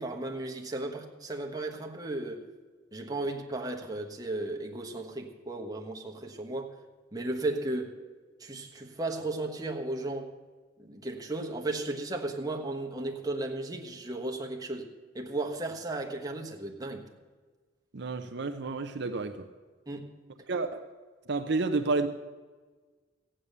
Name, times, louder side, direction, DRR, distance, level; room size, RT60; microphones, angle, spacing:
voice 1, 0.0-2.4 2.9-6.7 7.1-7.9 8.4-10.3 10.8-17.1 19.9-20.1, right 2 dB, 20° right, 1 dB, 1.2 m, -35 dB
voice 2, 17.9-19.5 20.5-20.8 21.3-22.1, right 3 dB, 60° right, 8 dB, 0.6 m, -30 dB
15.0 x 8.8 x 6.8 m, 1.4 s
head